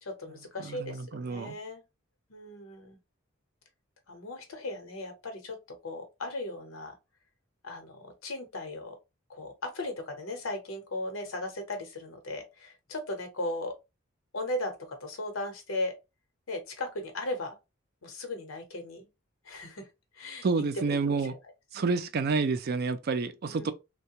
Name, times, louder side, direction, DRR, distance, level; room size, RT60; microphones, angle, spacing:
voice 1, 0.0-1.8 2.3-3.0 4.1-7.0 7.6-9.0 9.3-13.8 14.3-15.9 16.5-17.6 18.0-19.1 19.4-19.9 20.1-20.5 20.7-21.3 21.7-21.9 23.5-23.7, left 2 dB, 85° left, 0.9 m, -37 dB
voice 2, 0.6-1.5 20.4-21.3 21.7-23.7, right 4 dB, 50° right, 0.4 m, -29 dB
3.3 x 2.2 x 2.8 m
head